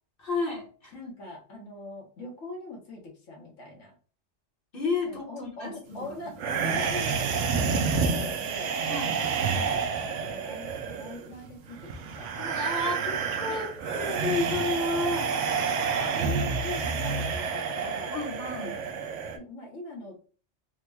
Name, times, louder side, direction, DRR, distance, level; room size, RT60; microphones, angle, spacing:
voice 1, 0.2-0.9 4.7-6.3 7.4-7.7 8.9-9.3 12.4-15.4 18.1-18.8, left 3 dB, 50° left, -2 dB, 1.1 m, -32 dB
voice 2, 0.9-4.0 5.1-8.8 9.5-12.4 13.5-14.0 15.1-18.1 19.3-20.2, left 2 dB, 75° left, 0 dB, 1.4 m, -42 dB
sound 1, 6.4-19.4, right 5 dB, 75° right, 0.9 m, -29 dB
3.5 x 2.2 x 3.3 m, 0.39 s
omnidirectional pair, 1.3 m